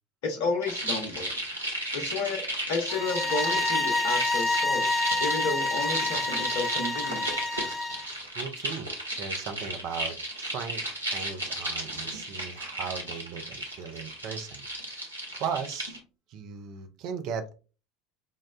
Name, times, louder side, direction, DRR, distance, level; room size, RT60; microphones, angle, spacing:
voice 1, 0.2-1.3 1.9-2.4 2.7-7.3, left 3 dB, 60° left, 4 dB, 0.8 m, -31 dB
sound 1, 0.6-16.0, right 1 dB, 85° right, 0.7 m, -34 dB
sound 2, 2.9-8.0, left 2 dB, 5° left, 0.4 m, -28 dB
voice 2, 7.8-10.8 11.1-16.0 16.3-17.5, right 6 dB, 50° right, 6 dB, 0.5 m, -37 dB
5.5 x 2.1 x 2.4 m, 0.33 s
figure-of-eight pair, 70°, 0 cm